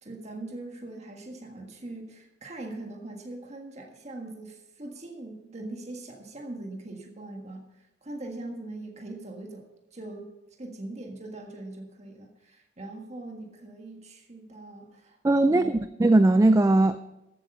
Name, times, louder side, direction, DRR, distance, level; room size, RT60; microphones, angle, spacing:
voice 1, 0.0-7.6 8.0-10.3 10.6-15.2 15.4-15.8, right 2 dB, 35° right, 1 dB, 1.6 m, -41 dB
voice 2, 15.2-17.0, right 2 dB, 15° right, 11 dB, 0.3 m, -20 dB
13.5 x 8.4 x 5.5 m, 0.93 s
head